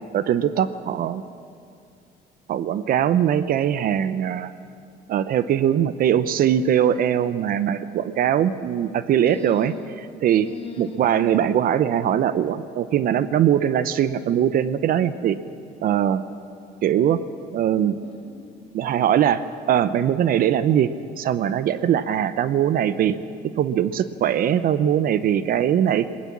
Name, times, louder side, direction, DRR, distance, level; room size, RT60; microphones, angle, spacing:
voice 1, 0.1-1.2 2.5-4.5 5.1-9.7 10.2-10.5 10.8-15.4 15.8-16.2 16.8-17.2 17.5-18.0 18.7-20.9 21.2-23.2 23.6-26.1, right 10 dB, 60° right, 14 dB, 0.8 m, -21 dB
voice 2, 9.2-9.9 10.4-11.3 18.0-18.8, left 5 dB, 35° left, 2 dB, 3.0 m, -38 dB
19.0 x 19.0 x 7.4 m, 2.4 s
cardioid pair, 110°, 17 cm